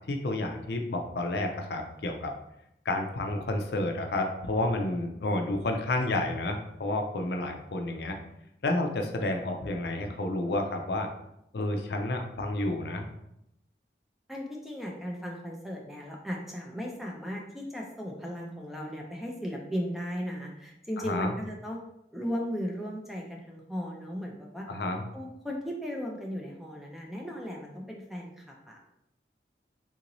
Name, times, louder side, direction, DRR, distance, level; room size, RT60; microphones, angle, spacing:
voice 1, 0.1-2.3 2.9-8.2 8.6-11.1 11.5-13.1 21.0-21.3 24.7-25.0, left 2 dB, 70° left, 4 dB, 0.4 m, -30 dB
voice 2, 14.3-21.8 22.1-24.7 25.1-28.9, equal, ahead, -1 dB, 0.4 m, -36 dB
3.7 x 2.6 x 2.9 m, 0.81 s
head